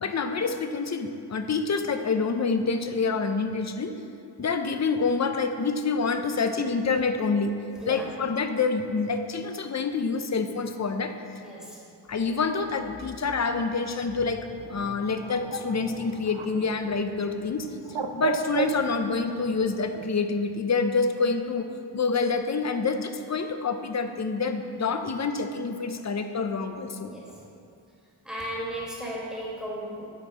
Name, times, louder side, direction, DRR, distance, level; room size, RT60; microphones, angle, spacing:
voice 1, 0.0-4.0 4.4-7.5 7.9-11.1 12.1-17.7 18.1-21.7 21.9-27.1, left 4 dB, 40° left, 7 dB, 0.5 m, -27 dB
voice 2, 11.4-11.8 27.0-27.4 28.3-30.1, equal, ahead, -5 dB, 1.7 m, -35 dB
Bird, 14.6-20.1, right 5 dB, 85° right, 0.5 m, -36 dB
7.6 x 4.4 x 4.8 m, 2.5 s
wide cardioid pair, 50°, 44 cm